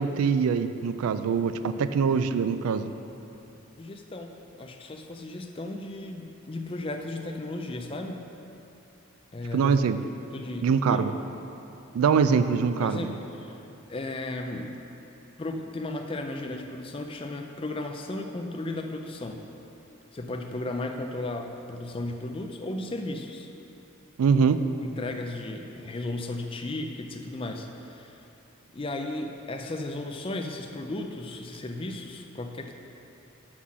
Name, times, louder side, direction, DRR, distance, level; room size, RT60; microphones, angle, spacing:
voice 1, 0.0-2.9 9.5-10.0 10.6-11.1 11.9-13.1 24.2-24.7, right 6 dB, 90° right, 11 dB, 0.3 m, -23 dB
voice 2, 3.8-8.3 9.3-11.1 12.8-13.6 13.9-14.7 15.4-19.4 20.1-23.5 24.8-28.3 28.7-32.7, left 2 dB, 25° left, 4 dB, 0.4 m, -35 dB
6.1 x 5.6 x 6.1 m, 2.9 s
head